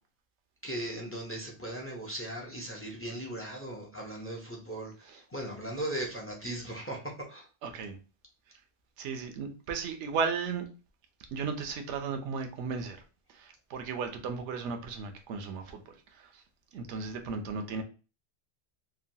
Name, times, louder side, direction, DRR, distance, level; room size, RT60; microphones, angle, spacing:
voice 1, 0.6-7.5, right 1 dB, 20° left, 0.4 m, -38 dB
voice 2, 7.6-8.0 9.0-10.7 11.3-13.0 13.3-16.4 16.7-17.8, right 5 dB, 80° right, 0.9 m, -35 dB
3.0 x 2.2 x 2.6 m
omnidirectional pair, 1.2 m